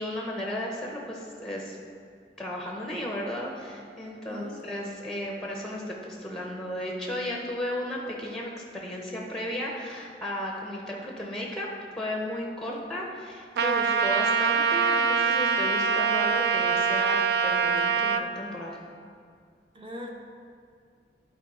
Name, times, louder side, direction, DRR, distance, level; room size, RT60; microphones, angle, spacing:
voice 1, 0.0-1.8 2.4-11.7 12.0-18.8, left 1 dB, 5° left, -1 dB, 0.6 m, -34 dB
voice 2, 4.2-4.6 12.7-12.8 19.7-20.1, left 1 dB, 30° right, 1 dB, 0.8 m, -41 dB
Trumpet, 13.6-18.2, right 5 dB, 60° right, 0.3 m, -24 dB
10.0 x 4.1 x 4.1 m, 2.2 s
head